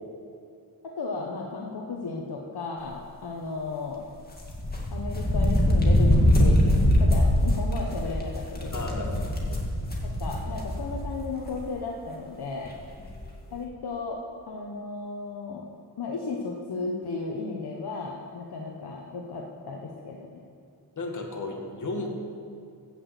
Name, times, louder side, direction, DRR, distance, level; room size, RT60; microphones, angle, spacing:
voice 1, 0.8-4.0 4.9-9.2 10.0-12.7 13.5-15.7 16.0-20.4, left 3 dB, 65° left, -1 dB, 1.2 m, -35 dB
sound 1, 4.4-11.1 11.5-11.6 12.6-12.7 13.0-13.3, left 1 dB, 20° left, 2.1 m, -23 dB
voice 2, 8.7-9.5 21.0-22.1, left 2 dB, 45° left, 1 dB, 2.1 m, -34 dB
15.0 x 6.2 x 8.2 m, 2.5 s
wide cardioid pair, 120°, 41 cm